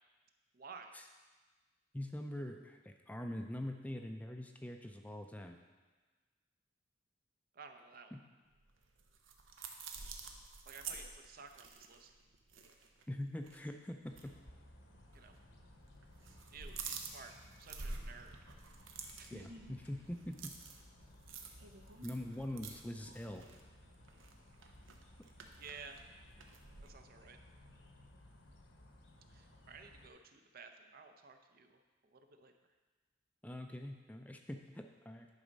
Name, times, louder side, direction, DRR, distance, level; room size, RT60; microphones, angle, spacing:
voice 1, 0.5-1.0 7.5-8.2 10.7-12.1 15.1-15.4 16.5-17.3 17.6-18.4 19.2-19.5 22.3-22.4 25.6-26.0 26.8-27.4 29.3-32.5, right 5 dB, 50° right, 6 dB, 0.6 m, -54 dB
voice 2, 1.9-5.6 8.1-8.2 13.1-14.3 19.3-20.5 22.0-23.5 33.4-35.3, left 1 dB, 10° left, 4 dB, 0.4 m, -43 dB
sound 1, 8.6-13.1 13.4-13.6 14.1-14.3 15.1-15.7 16.0-26.9, right 4 dB, 90° right, 0.8 m, -49 dB
sound 2, 14.1-30.1, left 1 dB, 75° left, 1.0 m, -60 dB
10.5 x 4.1 x 5.2 m, 1.3 s
head